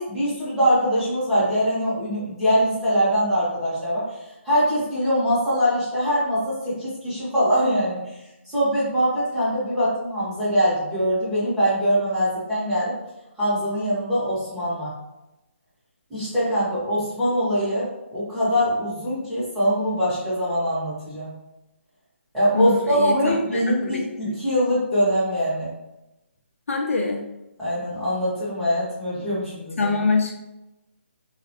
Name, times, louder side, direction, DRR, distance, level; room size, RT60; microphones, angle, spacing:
voice 1, 0.0-4.0 4.4-8.0 8.5-12.9 13.4-14.9 16.1-21.3 22.3-25.7 27.6-29.9, equal, ahead, -14 dB, 0.6 m, -23 dB
voice 2, 22.5-23.4 23.8-24.0 26.7-27.2 29.8-30.4, left 4 dB, 85° left, 2 dB, 0.4 m, -23 dB
2.2 x 2.0 x 2.8 m, 0.95 s
hypercardioid pair, 175°, 7 cm